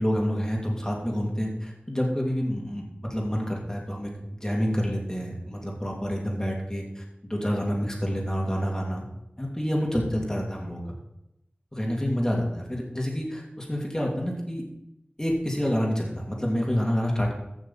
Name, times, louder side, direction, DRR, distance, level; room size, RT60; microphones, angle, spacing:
voice 1, 0.0-2.8 3.1-9.0 9.4-10.8 11.7-14.6 15.2-17.3, equal, 20° left, -2 dB, 2.8 m, -28 dB
14.5 x 6.3 x 4.3 m, 0.87 s
wide cardioid pair, 50°, 3 cm